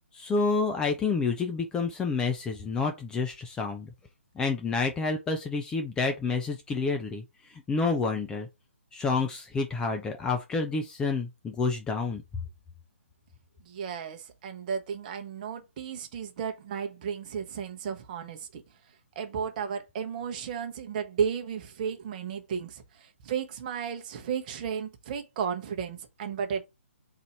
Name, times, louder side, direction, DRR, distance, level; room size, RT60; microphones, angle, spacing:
voice 1, 0.1-3.9 4.4-7.2 7.5-8.5 8.9-12.2, left 4 dB, 10° left, 0.5 m, -29 dB
voice 2, 13.7-18.6 19.2-26.7, right 7 dB, 35° right, 0.8 m, -34 dB
4.0 x 2.7 x 4.5 m
figure-of-eight pair, 135°, 7 cm